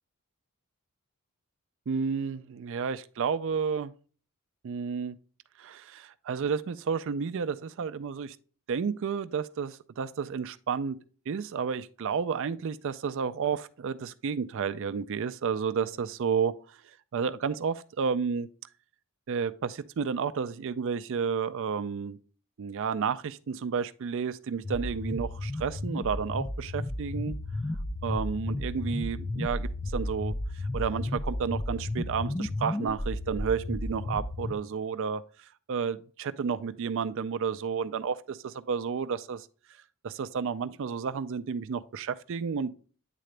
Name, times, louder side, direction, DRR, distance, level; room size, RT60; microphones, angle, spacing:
voice 1, 1.9-3.9 4.6-5.2 5.6-8.4 8.7-11.0 11.3-16.8 17.1-18.5 19.3-22.2 22.6-27.4 28.0-30.3 30.6-39.5 40.0-42.7, right 6 dB, 65° right, 0.4 m, -31 dB
sound 1, 24.6-34.5, left 1 dB, 20° left, 0.5 m, -33 dB
9.1 x 3.8 x 3.2 m
head